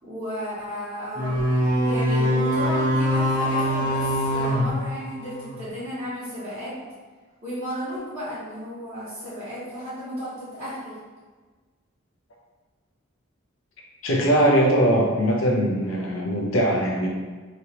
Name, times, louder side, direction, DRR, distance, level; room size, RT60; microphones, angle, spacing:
voice 1, 0.0-1.4 1.8-6.8 7.4-11.0, equal, 30° right, -18 dB, 1.4 m, -34 dB
sound 1, 1.2-5.6, equal, 45° right, 1.1 m, -23 dB
voice 2, 14.0-17.1, right 1 dB, 70° left, -2 dB, 0.7 m, -21 dB
3.2 x 2.9 x 2.8 m, 1.4 s
head